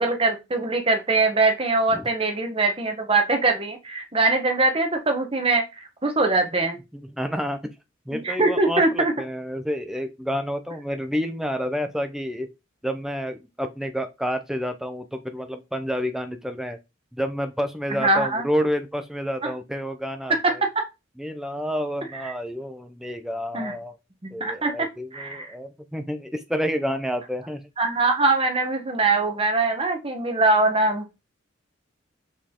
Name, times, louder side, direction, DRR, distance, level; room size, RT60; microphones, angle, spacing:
voice 1, 0.0-5.6 6.0-6.8 8.1-9.1 17.9-18.4 19.4-19.5 20.3-20.8 22.2-22.3 23.5-23.7 24.2-25.5 27.8-31.1, right 3 dB, 30° right, 1.4 m, -22 dB
voice 2, 6.9-7.7 8.1-12.5 12.8-16.8 17.1-20.6 21.2-24.0 24.3-27.6, equal, ahead, 0.8 m, -29 dB
6.6 x 5.3 x 3.8 m
head